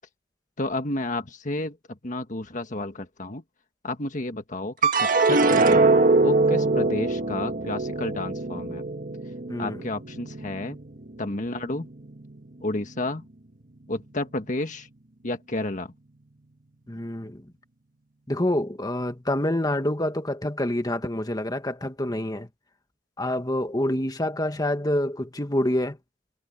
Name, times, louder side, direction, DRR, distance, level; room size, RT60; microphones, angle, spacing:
voice 1, 0.6-3.4 3.8-5.9 6.2-8.8 9.6-10.8 11.2-11.9 12.6-13.3 13.9-14.9 15.2-15.9, left 2 dB, 45° left, 1.6 m, -31 dB
sound 1, 4.8-11.3 11.7-12.4, right 3 dB, 45° right, 1.6 m, -23 dB
voice 2, 9.5-9.8 16.9-17.5 18.3-22.5 23.2-26.0, left 1 dB, 20° left, 1.7 m, -27 dB
head